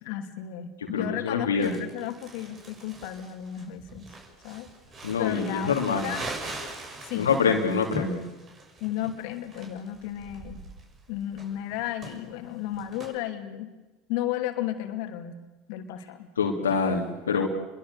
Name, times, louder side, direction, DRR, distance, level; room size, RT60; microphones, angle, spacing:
voice 1, 0.0-4.1 4.4-4.7 5.2-6.3 7.0-7.6 8.8-10.6 11.1-13.7 14.1-15.4 15.7-16.3, left 12 dB, 60° left, 5 dB, 2.8 m, -34 dB
voice 2, 0.8-1.8 5.0-6.1 7.1-8.2 16.4-17.5, left 5 dB, 80° left, 2 dB, 2.6 m, -25 dB
Crumpling crinkling, 1.6-13.1, right 2 dB, 35° right, 6.9 m, -42 dB
30.0 x 22.5 x 6.9 m, 1.2 s
figure-of-eight pair, 75°, 0 cm